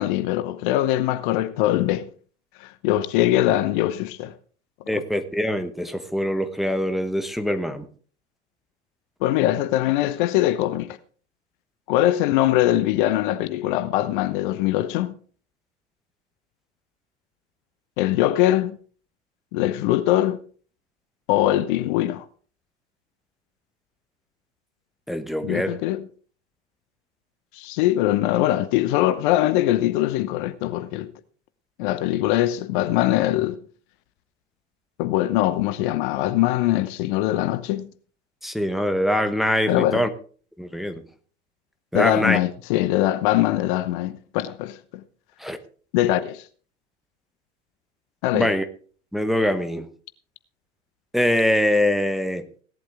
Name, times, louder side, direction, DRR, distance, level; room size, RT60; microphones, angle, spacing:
voice 1, 0.0-2.1 2.6-4.3 4.9-5.0 9.2-11.0 11.9-15.1 18.0-18.8 19.5-20.4 21.3-22.2 25.4-26.1 27.5-31.1 31.8-33.6 35.0-37.9 39.7-40.1 41.9-45.0 45.9-46.5 48.2-48.5, left 14 dB, 45° left, 0.9 m, -22 dB
voice 2, 4.9-7.9 25.1-25.7 38.4-40.1 40.6-41.0 41.9-42.4 45.4-45.6 48.3-48.6 49.1-49.9 51.1-52.4, equal, ahead, 1.0 m, -23 dB
17.0 x 11.5 x 3.5 m
figure-of-eight pair, 85°, 36 cm